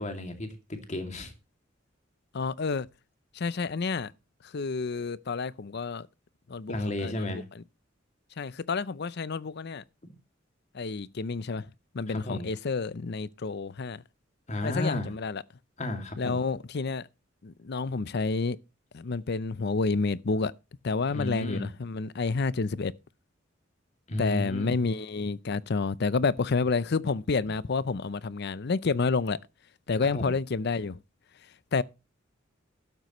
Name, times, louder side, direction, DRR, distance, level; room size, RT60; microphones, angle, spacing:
voice 1, 0.0-1.3 6.7-7.4 10.0-10.1 12.1-12.5 14.5-15.1 15.8-16.4 21.1-21.7 24.1-24.8 30.1-30.3, left 1 dB, 40° left, 2.4 m, -33 dB
voice 2, 2.3-2.9 3.3-4.1 4.5-6.1 6.5-6.7 7.0-7.4 8.4-9.8 10.7-11.7 11.9-14.0 14.6-15.4 16.2-17.1 17.4-18.6 18.9-20.5 20.8-22.9 24.2-29.4 29.9-31.0 31.7-31.8, left 4 dB, 60° left, 0.6 m, -29 dB
13.5 x 12.0 x 3.1 m
head